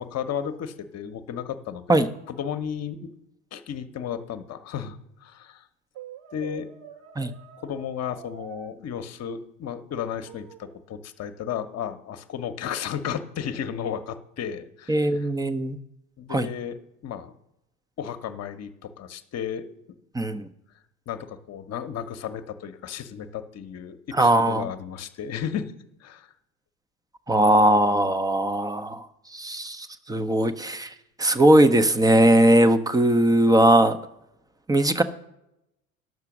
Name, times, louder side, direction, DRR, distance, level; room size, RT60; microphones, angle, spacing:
voice 1, 0.0-3.1 3.5-5.6 6.3-6.7 7.6-15.0 16.2-17.3 18.0-19.8 21.1-25.7 26.0-26.3, left 8 dB, 35° left, 9 dB, 1.0 m, -34 dB
Brass instrument, 5.9-8.7 10.2-10.8, right 8 dB, 55° right, 1.6 m, -45 dB
voice 2, 14.9-15.8 16.3-16.5 20.1-20.5 24.1-24.7 27.3-34.0 34.7-35.0, right 1 dB, 10° right, 11 dB, 0.7 m, -20 dB
11.0 x 6.7 x 6.1 m, 0.86 s
hypercardioid pair, 75°, 43 cm